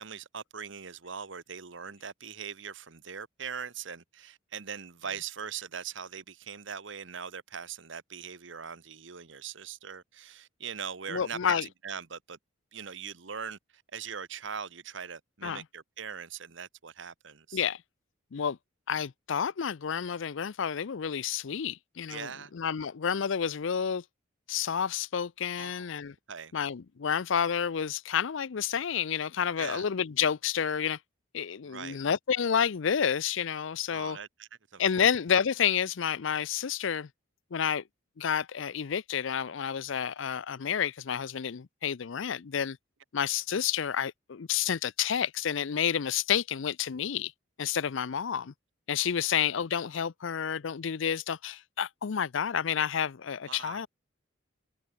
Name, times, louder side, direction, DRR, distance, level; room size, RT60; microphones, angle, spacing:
voice 1, 0.0-12.4 12.7-13.6 13.9-17.6 22.1-22.5 25.6-25.9 26.3-26.5 29.6-29.9 31.6-32.0 33.9-35.1 49.0-49.1 53.5-53.8, right 7 dB, 60° right, 1.1 m, -41 dB
voice 2, 11.1-11.7 15.4-15.6 17.5-17.8 18.3-18.6 18.9-24.0 24.5-26.2 26.5-31.0 31.3-34.2 34.8-37.1 37.5-37.8 38.2-42.8 43.1-47.3 47.6-48.5 48.9-53.9, left 8 dB, 65° left, 0.5 m, -30 dB
head